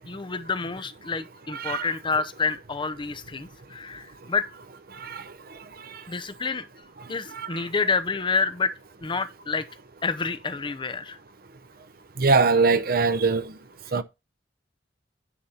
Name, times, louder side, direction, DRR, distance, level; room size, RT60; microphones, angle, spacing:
voice 1, 0.1-4.5 6.1-6.6 7.1-8.7 9.0-9.7 10.0-11.2, left 4 dB, 25° left, 0.6 m, -28 dB
voice 2, 1.5-1.9 5.0-5.2 7.3-7.6 12.2-13.5 13.9-14.0, right 4 dB, 55° right, 0.8 m, -22 dB
9.6 x 4.3 x 5.7 m
head